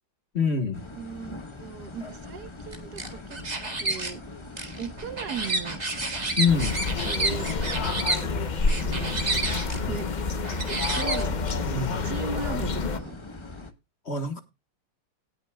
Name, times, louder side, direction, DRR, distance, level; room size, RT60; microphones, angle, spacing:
voice 1, 0.3-0.8 6.4-6.9 11.6-12.1 14.0-14.4, left 5 dB, 40° left, 8 dB, 1.4 m, -25 dB
sound 1, 0.7-13.7, left 2 dB, 25° left, 0.7 m, -42 dB
voice 2, 0.9-3.4 3.8-4.2 4.8-5.8 7.0-7.4 7.8-8.3 8.8-9.2 9.8-10.1 10.7-11.4 12.0-13.1, right 6 dB, 65° right, 11 dB, 1.4 m, -37 dB
sound 2, 2.7-4.1 4.6-8.2 8.7-9.8 10.4-11.5, right 2 dB, 25° right, 1.7 m, -30 dB
sound 3, 6.5-13.0, left 4 dB, 70° left, 0.4 m, -28 dB
18.0 x 7.9 x 2.2 m, 0.25 s
omnidirectional pair, 2.0 m